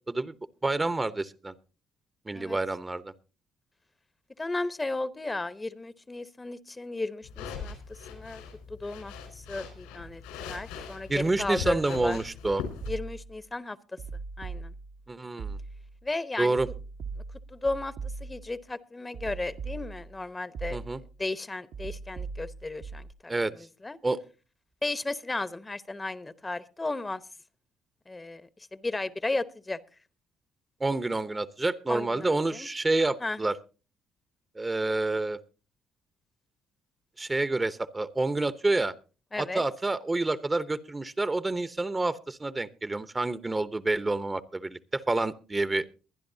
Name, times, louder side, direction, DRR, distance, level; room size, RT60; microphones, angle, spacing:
voice 1, 0.6-1.5 2.3-3.1 11.1-12.6 15.1-15.6 16.4-16.7 20.7-21.0 23.3-23.5 24.0-24.2 30.8-33.5 34.6-35.4 37.2-38.9 39.4-45.8, right 2 dB, 20° right, 14 dB, 0.9 m, -28 dB
voice 2, 4.4-8.4 8.7-12.2 12.9-13.8 14.4-14.7 16.0-16.6 17.5-20.8 21.2-24.0 24.8-27.2 28.1-29.8 31.9-32.7 33.2-33.4 39.3-39.6, left 2 dB, 20° left, 15 dB, 0.9 m, -34 dB
sound 1, 7.2-12.9, left 6 dB, 85° left, 4.5 m, -40 dB
sound 2, 12.8-13.4 14.0-15.0 15.4-16.0 16.6-18.6 19.1-20.2 20.5-21.2 21.7-23.1, right 4 dB, 65° right, 1.3 m, -39 dB
23.0 x 10.5 x 2.8 m, 0.34 s
hypercardioid pair, 55°, 0 cm